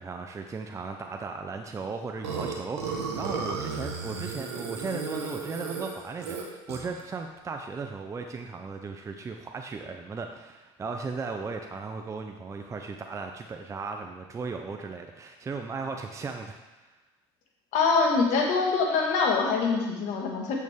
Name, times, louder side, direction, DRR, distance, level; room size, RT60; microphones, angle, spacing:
voice 1, 0.0-16.5 16.8-16.9, right 4 dB, 20° right, 4 dB, 0.6 m, -36 dB
Burping eructation, 2.2-7.0, right 5 dB, 90° right, 1.3 m, -34 dB
voice 2, 17.7-20.5, left 4 dB, 60° left, 0 dB, 1.8 m, -24 dB
8.3 x 6.4 x 3.6 m, 1.1 s
hypercardioid pair, 90°, 14 cm